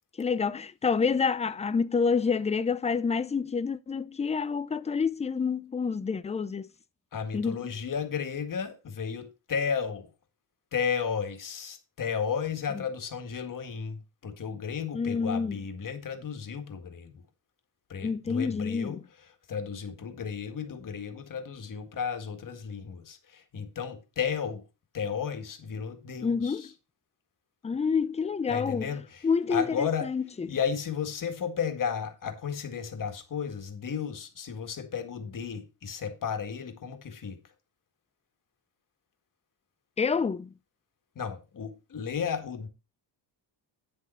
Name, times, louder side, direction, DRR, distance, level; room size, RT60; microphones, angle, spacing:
voice 1, 0.2-6.7 7.3-7.6 12.7-12.8 14.9-15.6 18.0-19.0 26.2-26.7 27.6-28.9 29.2-30.5 40.0-40.5, left 5 dB, 15° left, 0.4 m, -28 dB
voice 2, 7.1-10.1 10.7-17.2 17.9-19.0 19.5-24.6 24.9-26.7 28.5-30.1 30.5-37.4 41.2-42.7, left 7 dB, 45° left, 1.8 m, -33 dB
9.6 x 6.6 x 4.3 m
wide cardioid pair, 150°, 43 cm